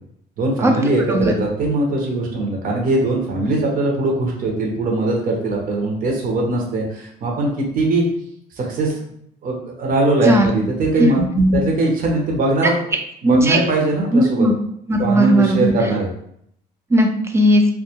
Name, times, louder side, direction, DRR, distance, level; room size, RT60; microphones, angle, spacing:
voice 1, 0.4-8.0 8.6-9.0 9.4-11.2 11.5-12.9 13.2-14.5 15.0-16.1, right 2 dB, 55° right, -1 dB, 0.7 m, -20 dB
voice 2, 11.2-11.6 13.2-13.6 14.1-14.5 14.9-15.7 16.9-17.7, equal, 15° right, 3 dB, 0.4 m, -16 dB
2.2 x 2.2 x 2.8 m, 0.69 s
cardioid pair, 110°, 17 cm